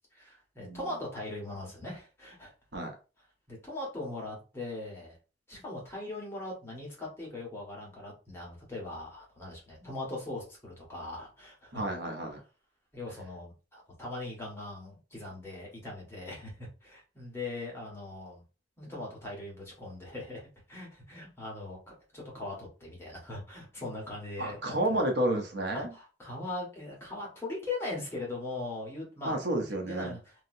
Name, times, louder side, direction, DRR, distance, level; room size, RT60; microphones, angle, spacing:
voice 1, 0.1-2.5 3.5-5.2 5.5-11.8 12.9-18.4 18.8-21.8 22.1-25.0 25.7-30.3, left 2 dB, 15° left, -3 dB, 1.4 m, -40 dB
voice 2, 11.7-12.4 24.4-25.9 29.2-30.1, right 1 dB, 65° right, 3 dB, 0.8 m, -31 dB
3.0 x 2.7 x 2.6 m, 0.33 s
head